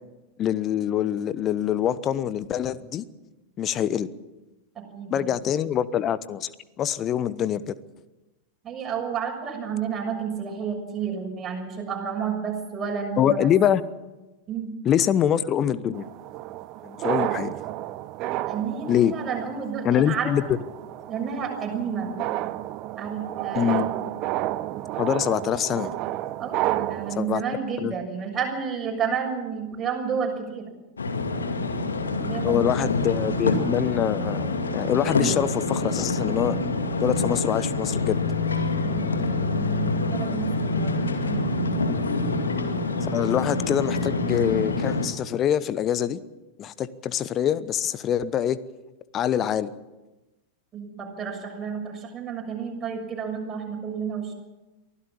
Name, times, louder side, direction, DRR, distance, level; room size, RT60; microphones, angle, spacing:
voice 1, 0.4-3.0 3.6-4.1 5.1-6.5 6.8-7.7 13.2-13.8 14.8-16.1 16.8-17.5 18.9-19.1 19.8-20.4 23.5-23.9 25.0-25.9 27.2-27.4 27.8-27.9 32.4-34.5 34.7-36.6 37.0-38.2 43.0-46.2 46.6-48.6 49.1-49.7, left 10 dB, 30° left, 16 dB, 1.0 m, -24 dB
voice 2, 4.7-5.2 8.6-13.5 14.5-14.7 18.4-20.3 21.1-22.1 23.0-23.8 26.4-30.6 32.2-32.8 38.8-40.9 41.2-41.8 50.7-54.3, right 6 dB, 25° right, 1 dB, 6.6 m, -31 dB
sound 1, 15.9-27.2, right 15 dB, 40° right, 0.8 m, -31 dB
sound 2, 31.0-45.1, left 3 dB, 75° left, 2.3 m, -26 dB
23.5 x 15.5 x 7.4 m, 1.1 s
figure-of-eight pair, 90°, 0 cm